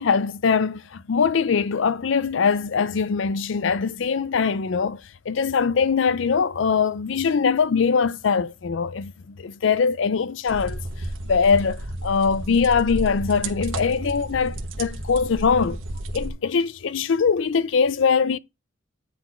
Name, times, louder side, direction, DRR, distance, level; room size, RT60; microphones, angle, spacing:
voice 1, 0.0-10.8 11.3-15.8 16.1-18.4, left 5 dB, 70° left, 0.5 m, -22 dB
sound 1, 10.5-16.3, right 1 dB, 85° right, 1.3 m, -32 dB
9.3 x 4.1 x 4.3 m
head